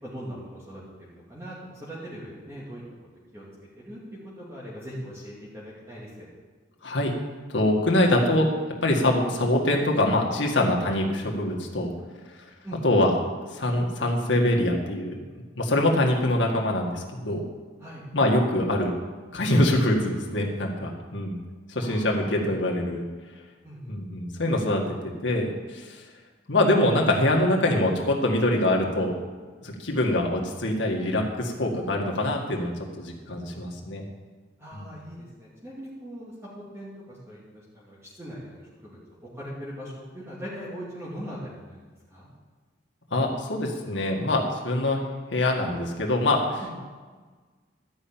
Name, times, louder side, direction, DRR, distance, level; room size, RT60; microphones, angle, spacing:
voice 1, 0.0-2.8 3.3-3.5 3.7-6.3 12.6-12.9 17.8-18.0 21.8-22.5 23.6-23.9 34.6-41.8 42.1-42.3 46.6-46.8, equal, 15° right, -7 dB, 2.4 m, -40 dB
voice 2, 6.8-7.1 7.5-8.5 8.8-11.9 12.8-13.1 13.5-15.3 15.5-17.4 18.1-18.9 19.3-21.4 21.7-23.0 23.9-24.8 25.2-26.0 26.5-29.1 29.6-34.0 34.7-34.9 43.1-45.0 45.3-46.8, left 1 dB, 75° left, -1 dB, 1.8 m, -24 dB
12.5 x 5.7 x 8.8 m, 1.4 s
head